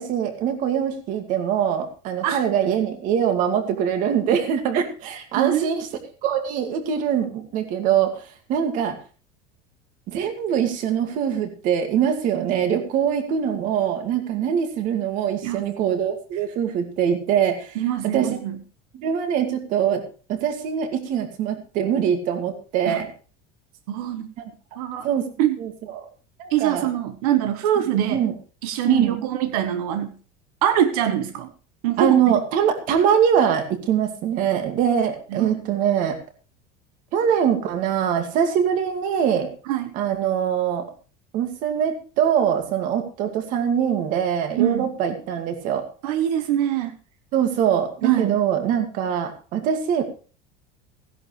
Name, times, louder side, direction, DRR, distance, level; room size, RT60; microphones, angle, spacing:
voice 1, 0.0-5.9 6.2-9.0 10.1-18.4 18.9-20.0 20.3-23.1 24.4-24.5 25.0-25.3 25.6-26.1 26.4-26.9 28.1-28.3 28.9-29.3 32.0-36.2 37.1-39.5 39.9-40.9 41.3-45.9 47.3-50.0, right 8 dB, 45° right, 7 dB, 2.3 m, -23 dB
voice 2, 5.3-5.7 15.4-15.7 17.8-18.6 22.9-23.0 23.9-24.3 24.8-25.1 25.4-25.6 26.5-28.2 28.6-30.1 30.6-31.5 31.8-32.1 35.3-35.6 39.7-39.9 44.6-44.9 46.0-46.9 48.0-48.4, right 11 dB, 85° right, 8 dB, 1.3 m, -23 dB
16.0 x 11.0 x 3.3 m, 0.36 s
cardioid pair, 170°, 19 cm